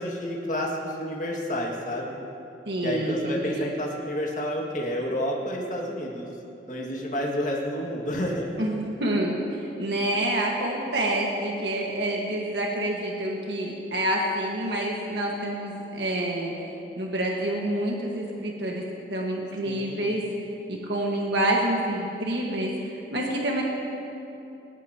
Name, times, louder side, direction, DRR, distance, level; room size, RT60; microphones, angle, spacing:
voice 1, 0.0-2.2 2.8-6.3 6.7-8.5 19.6-20.1, equal, 45° left, -2 dB, 2.1 m, -30 dB
voice 2, 2.6-3.7 8.6-16.5 17.0-18.8 19.1-20.2 20.7-23.6, right 1 dB, 70° right, -2 dB, 1.7 m, -27 dB
19.5 x 18.0 x 3.0 m, 2.8 s
head